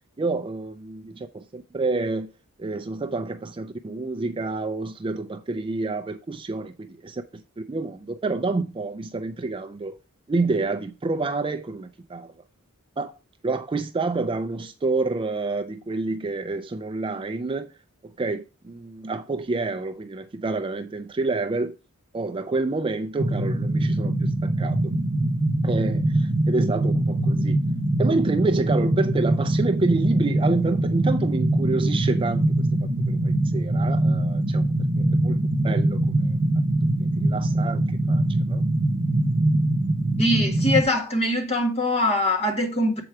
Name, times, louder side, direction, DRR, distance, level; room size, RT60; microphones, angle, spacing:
voice 1, 0.2-2.3 2.6-7.4 7.7-10.0 10.3-12.3 13.0-13.1 13.4-17.7 18.0-21.8 22.1-24.8 25.6-27.6 28.0-32.7 33.1-34.6 35.0-35.4 35.6-36.4 37.2-38.6, right 3 dB, 25° right, 0.4 m, -28 dB
sound 1, 23.2-40.8, right 1 dB, 55° right, 0.9 m, -23 dB
voice 2, 40.2-43.0, left 1 dB, 30° left, 1.7 m, -23 dB
7.8 x 4.5 x 4.7 m
head